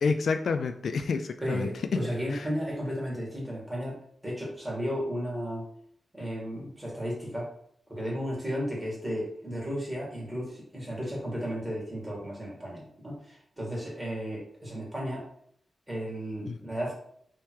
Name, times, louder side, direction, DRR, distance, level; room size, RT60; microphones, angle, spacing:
voice 1, 0.0-2.0 2.3-2.5 16.5-16.6, left 4 dB, 70° left, 8 dB, 0.3 m, -29 dB
voice 2, 1.4-5.6 6.1-7.5 7.9-15.2 15.9-16.9, equal, 10° right, -5 dB, 1.8 m, -34 dB
3.5 x 2.9 x 4.6 m, 0.66 s
wide cardioid pair, 140°, 0 cm